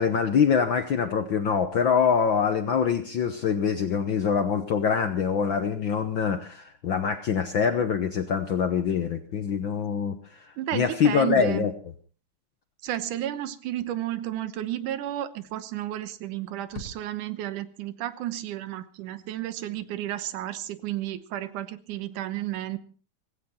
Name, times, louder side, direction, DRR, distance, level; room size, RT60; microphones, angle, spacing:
voice 1, 0.0-11.7, left 6 dB, 70° left, 8 dB, 1.1 m, -24 dB
voice 2, 10.6-11.7 12.8-22.8, right 13 dB, 85° right, 14 dB, 2.5 m, -32 dB
sound 1, 12.9-13.3 15.4-15.9 16.2-16.3 16.7-17.5, left 2 dB, 50° left, 2.6 m, -45 dB
17.0 x 17.0 x 4.3 m, 0.39 s
omnidirectional pair, 3.6 m